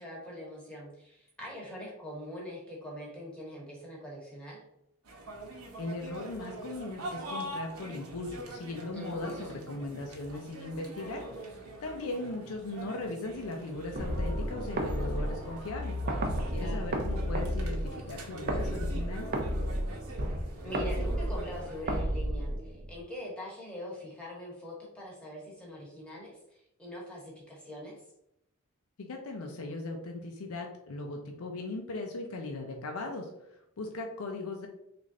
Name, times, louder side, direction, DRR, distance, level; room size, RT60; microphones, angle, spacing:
voice 1, 0.0-4.6 8.9-9.7 16.6-16.9 20.6-26.4 26.8-27.9, left 1 dB, 5° left, -4 dB, 1.0 m, -43 dB
sound 1, 5.0-22.0, right 1 dB, 85° right, 0.9 m, -44 dB
voice 2, 5.8-11.2 11.8-16.0 16.5-19.3 29.0-34.7, left 2 dB, 80° left, 3 dB, 0.5 m, -38 dB
sound 2, 14.0-23.0, equal, 45° right, 0.5 m, -32 dB
3.2 x 2.5 x 3.7 m, 0.82 s
head